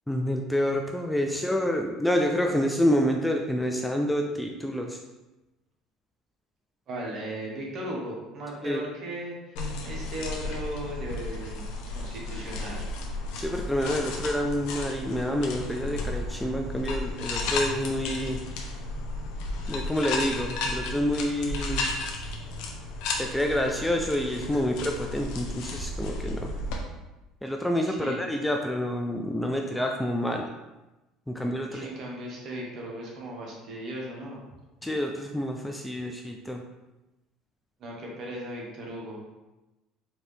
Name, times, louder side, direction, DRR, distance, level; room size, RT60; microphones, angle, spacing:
voice 1, 0.1-5.0 8.6-8.8 13.3-18.4 19.7-21.9 23.2-26.5 27.4-30.5 31.3-31.9 34.8-36.7, equal, 5° left, 2 dB, 0.3 m, -28 dB
voice 2, 6.9-9.6 9.8-12.9 27.9-28.2 31.7-34.4 37.8-39.2, right 1 dB, 50° right, -3 dB, 1.3 m, -37 dB
sound 1, 9.6-26.8, left 2 dB, 75° left, 0.7 m, -33 dB
4.5 x 2.7 x 3.3 m, 1.0 s
supercardioid pair, 110°, 0 cm